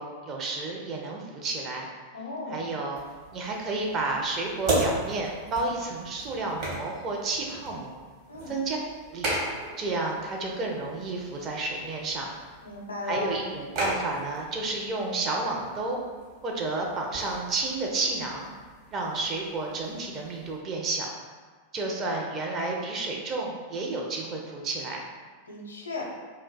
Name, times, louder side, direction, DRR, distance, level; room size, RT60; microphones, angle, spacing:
voice 1, 0.0-1.9 2.5-3.0 3.3-8.0 8.5-8.8 9.1-9.3 9.8-12.3 13.1-16.0 16.4-18.5 18.9-21.1 21.7-25.0, right 3 dB, 30° right, -1 dB, 0.5 m, -31 dB
voice 2, 2.1-2.7 8.3-8.5 12.6-13.4 25.5-26.0, left 3 dB, 70° left, -1 dB, 0.5 m, -35 dB
sound 1, 3.0-20.6, right 1 dB, 45° right, 1.1 m, -37 dB
2.5 x 2.2 x 3.7 m, 1.4 s
figure-of-eight pair, 90°, 0 cm